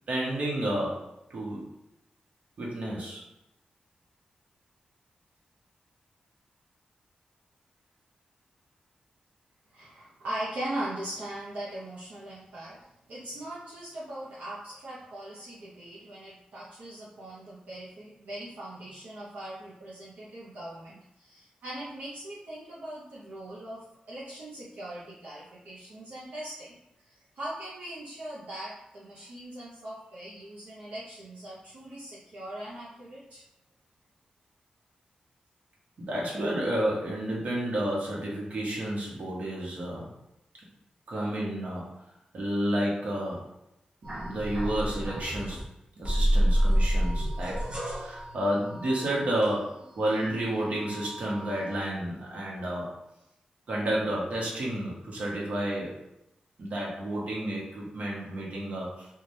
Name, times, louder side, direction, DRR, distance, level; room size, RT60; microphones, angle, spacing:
voice 1, 0.1-1.7 2.6-3.2 36.0-40.1 41.1-41.9 42.3-43.4 44.0-45.6 46.0-47.7 48.0-52.9 53.7-56.0 56.6-58.9, right 1 dB, 65° right, -4 dB, 1.0 m, -31 dB
voice 2, 9.7-26.7 27.0-33.4, right 1 dB, 85° right, -8 dB, 0.7 m, -40 dB
sound 1, 44.0-45.7 46.0-50.0 50.4-51.9, equal, 35° right, 0.8 m, -29 dB
3.2 x 2.3 x 2.6 m, 0.87 s
wide cardioid pair, 100°, 3 cm